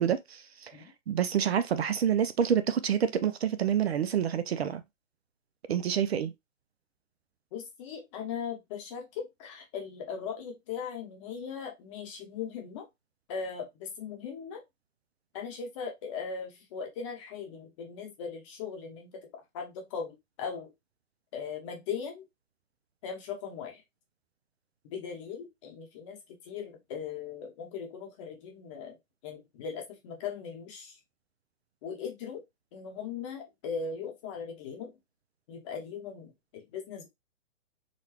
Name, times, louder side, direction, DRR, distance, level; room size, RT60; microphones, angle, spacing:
voice 1, 0.0-0.7 1.1-4.8 5.7-6.3, right 8 dB, 55° right, 0.5 m, -27 dB
voice 2, 7.5-12.8 13.3-14.6 15.3-19.1 19.5-20.7 21.3-22.2 23.0-23.8 24.9-26.2 26.4-29.0 29.2-31.0 31.8-32.4 32.7-34.9 35.5-37.1, left 6 dB, 25° left, 0.8 m, -39 dB
3.9 x 2.2 x 2.9 m
hypercardioid pair, 140°, 39 cm